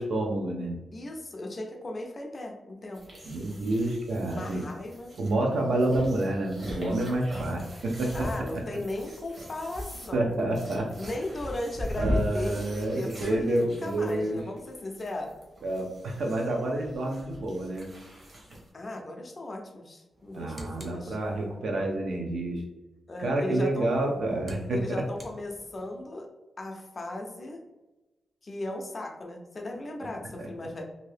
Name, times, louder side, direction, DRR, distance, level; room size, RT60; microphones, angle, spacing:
voice 1, 0.0-0.7 3.3-4.6 5.2-8.3 10.1-10.9 12.0-14.4 15.6-17.9 20.3-22.6 23.2-25.0 30.4-30.7, right 1 dB, 75° right, 1 dB, 0.7 m, -28 dB
voice 2, 0.9-3.0 4.2-5.1 8.1-10.4 11.0-15.3 18.7-21.2 23.1-23.9 24.7-26.3 26.6-27.6 28.4-30.8, left 2 dB, 30° left, 2 dB, 0.5 m, -37 dB
sound 1, 2.9-18.7, equal, 40° right, 1.0 m, -39 dB
sound 2, 20.1-21.7 23.7-26.0, equal, 20° right, 0.6 m, -48 dB
2.7 x 2.7 x 3.2 m, 1.1 s
wide cardioid pair, 175°, 0 cm